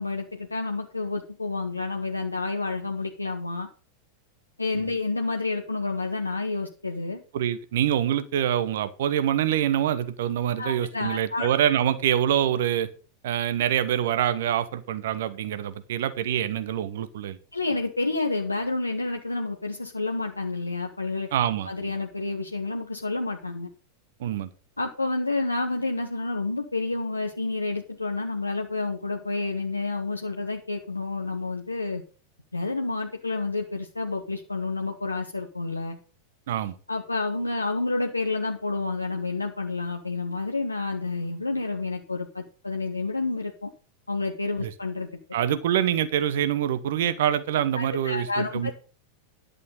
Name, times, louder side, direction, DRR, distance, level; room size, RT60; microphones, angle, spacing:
voice 1, 0.0-3.7 4.6-7.2 10.6-11.5 17.5-21.3 21.7-23.7 24.8-32.0 32.5-36.0 36.9-43.7 44.1-45.1 47.7-48.7, left 3 dB, 80° left, 3 dB, 0.9 m, -29 dB
voice 2, 7.3-12.9 13.2-17.4 21.3-21.7 24.2-24.5 36.5-36.8 44.6-44.7 45.3-48.7, right 10 dB, 55° right, 13 dB, 1.0 m, -25 dB
11.0 x 6.9 x 5.4 m, 0.37 s
figure-of-eight pair, 90°, 0 cm